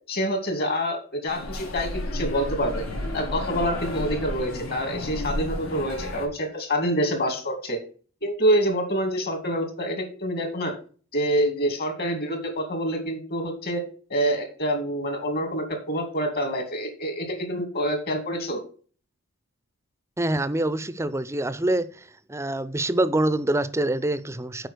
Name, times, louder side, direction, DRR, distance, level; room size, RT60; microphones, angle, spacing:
voice 1, 0.1-2.8 3.1-7.8 8.2-10.7 11.1-13.8 14.1-18.6, equal, 50° left, 2.5 m, -26 dB
sound 1, 1.3-6.3, left 1 dB, 80° left, 2.5 m, -32 dB
voice 2, 20.2-21.9 22.3-24.7, right 1 dB, 15° right, 0.5 m, -25 dB
7.8 x 5.0 x 6.7 m
head